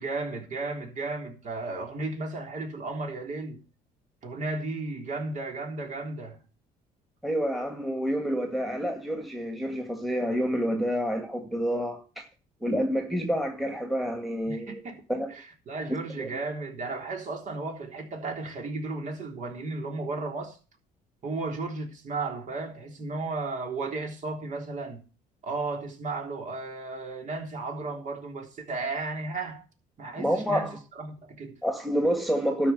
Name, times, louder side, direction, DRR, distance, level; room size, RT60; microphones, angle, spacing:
voice 1, 0.0-3.6 4.2-6.4 14.5-15.0 15.3-20.6 21.2-25.0 25.4-29.6 30.0-31.6, right 3 dB, 45° right, 3.7 m, -34 dB
voice 2, 7.2-12.2 12.6-14.8 15.1-15.3 16.2-16.4 30.2-30.8 31.6-32.7, equal, ahead, 2.1 m, -28 dB
12.5 x 5.2 x 8.0 m
cardioid pair, 110°, 17 cm